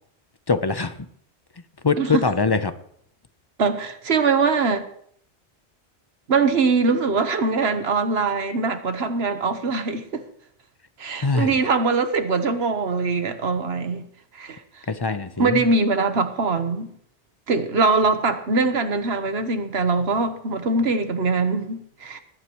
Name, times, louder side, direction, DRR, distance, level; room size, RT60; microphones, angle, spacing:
voice 1, 0.5-1.0 1.8-2.7 11.2-11.5 14.9-15.6, left 4 dB, 30° left, 0.5 m, -22 dB
voice 2, 3.6-4.9 6.3-10.2 11.0-14.0 14.3-14.6 15.4-16.9 17.5-22.2, right 4 dB, 65° right, 1.4 m, -22 dB
20.5 x 11.5 x 3.1 m
omnidirectional pair, 1.2 m